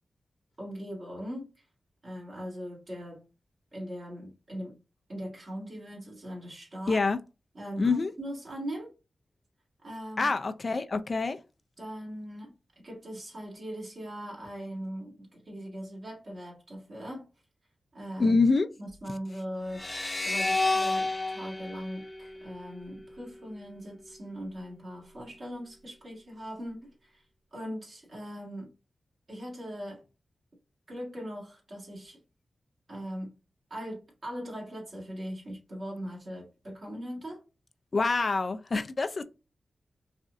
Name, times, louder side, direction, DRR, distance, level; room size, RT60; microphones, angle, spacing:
voice 1, 0.6-1.6 2.0-3.3 3.7-4.8 5.1-7.0 7.5-8.9 9.8-10.3 10.9-11.0 11.8-12.5 12.8-17.2 17.9-18.4 18.8-19.9 20.2-27.2 27.5-28.7 29.3-30.0 30.9-32.2 32.9-33.3 33.7-37.4, equal, 60° right, 1.8 m, -40 dB
voice 2, 6.9-7.2 7.8-8.1 10.2-11.4 18.2-18.7 37.9-39.2, left 3 dB, 55° left, 0.4 m, -26 dB
sound 1, 19.7-23.0, left 2 dB, 30° left, 0.8 m, -31 dB
4.1 x 2.5 x 2.5 m
cardioid pair, 40°, 0 cm